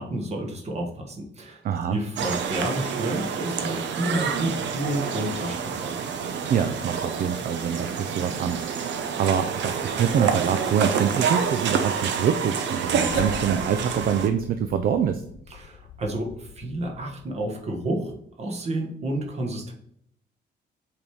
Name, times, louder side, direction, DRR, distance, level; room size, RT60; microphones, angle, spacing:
voice 1, 0.0-1.6 1.9-5.9 15.5-18.1 18.4-19.7, right 1 dB, 35° right, 1 dB, 1.3 m, -30 dB
voice 2, 1.6-2.0 6.5-15.2, right 8 dB, 50° right, 9 dB, 0.5 m, -25 dB
sound 1, 2.2-14.3, right 6 dB, 75° right, 0.8 m, -28 dB
sound 2, 12.6-17.8, left 9 dB, 65° left, 0.5 m, -42 dB
7.5 x 3.5 x 4.7 m, 0.70 s
cardioid pair, 160°, 19 cm